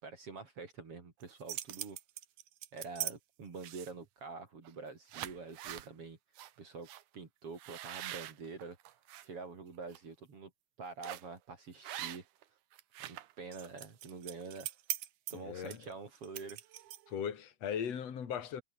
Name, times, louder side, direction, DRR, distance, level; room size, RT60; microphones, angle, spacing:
voice 1, 0.0-2.0 2.7-6.2 6.6-6.9 7.1-8.8 9.2-10.5 10.8-12.2 13.0-14.7 15.3-16.6, right 4 dB, 45° right, 3.9 m, -46 dB
sound 1, 1.2-3.1 3.6-4.1 4.6-4.8 5.1-5.9 6.4-6.5 6.9-7.0 7.6-9.3 9.7-10.0 11.0-11.3 11.8-12.4 12.7-17.2, right 13 dB, 75° right, 2.6 m, -42 dB
voice 2, 15.3-15.8 17.1-18.6, left 8 dB, 50° left, 3.6 m, -38 dB
omnidirectional pair, 3.7 m